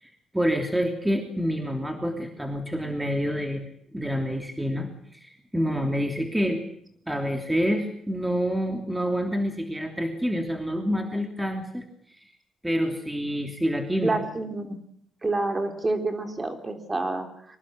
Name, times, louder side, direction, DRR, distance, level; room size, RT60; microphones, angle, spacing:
voice 1, 0.0-6.6 7.1-12.2 12.6-14.2, equal, 5° right, 4 dB, 3.1 m, -28 dB
voice 2, 14.0-14.8 15.2-17.6, right 2 dB, 25° right, 5 dB, 3.6 m, -28 dB
24.0 x 19.0 x 7.9 m, 0.68 s
cardioid pair, 90°, 0 cm